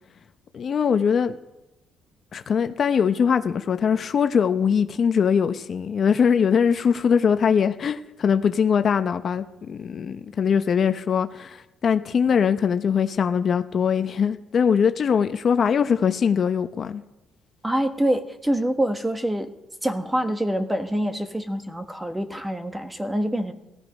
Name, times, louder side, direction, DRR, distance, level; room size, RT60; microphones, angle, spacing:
voice 1, 0.5-1.4 2.3-17.0, left 7 dB, 45° left, 0.7 m, -22 dB
voice 2, 17.6-19.5 19.8-23.5, right 1 dB, 10° right, 1.3 m, -25 dB
17.5 x 13.5 x 5.4 m
cardioid pair, 110°, 0 cm